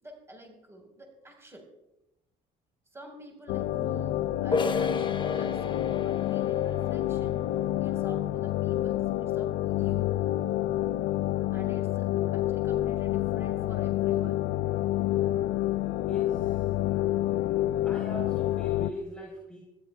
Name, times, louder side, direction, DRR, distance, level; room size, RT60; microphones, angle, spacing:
voice 1, 0.0-1.7 2.9-7.4 7.8-10.1 11.5-14.4, equal, 15° right, 1 dB, 4.2 m, -48 dB
sound 1, 3.5-18.9, left 14 dB, 80° left, 0.5 m, -28 dB
sound 2, 4.5-10.0, left 4 dB, 30° left, 0.9 m, -35 dB
voice 2, 16.1-16.7 17.8-19.6, right 1 dB, 5° left, -3 dB, 3.3 m, -41 dB
26.5 x 13.0 x 2.3 m, 0.91 s
cardioid pair, 110°, 17 cm